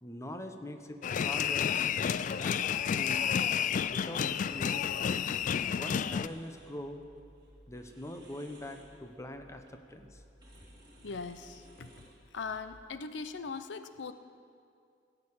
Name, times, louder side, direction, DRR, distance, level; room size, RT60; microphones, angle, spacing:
voice 1, 0.0-1.7 2.2-3.3 3.9-5.1 5.8-7.0 7.7-9.6 9.9-10.2, left 1 dB, 15° left, 6 dB, 0.8 m, -43 dB
sound 1, 1.0-6.3, left 8 dB, 45° left, 0.3 m, -30 dB
sound 2, 5.1-12.8, equal, 25° right, 2.3 m, -57 dB
voice 2, 11.0-11.9 12.3-14.1, left 4 dB, 90° left, 11 dB, 0.6 m, -40 dB
16.5 x 6.7 x 8.6 m, 2.3 s
head